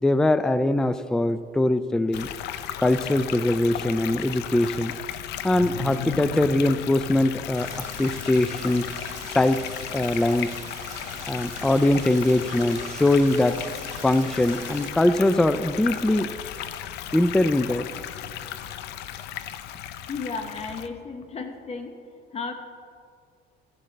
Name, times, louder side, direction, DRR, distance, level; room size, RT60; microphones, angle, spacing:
voice 1, 0.0-2.3 2.8-4.9 5.4-7.7 8.0-8.9 9.3-9.6 9.9-10.6 11.2-13.6 14.0-16.3 17.1-17.9, left 1 dB, 5° left, 13 dB, 0.3 m, -22 dB
sound 1, 2.1-20.9, left 10 dB, 80° left, 0.6 m, -35 dB
sound 2, 7.6-14.9, right 5 dB, 45° right, 2.6 m, -43 dB
voice 2, 20.1-21.9 22.3-22.5, left 4 dB, 35° left, 6 dB, 0.9 m, -33 dB
15.5 x 11.0 x 3.3 m, 2.3 s
cardioid pair, 110°, 17 cm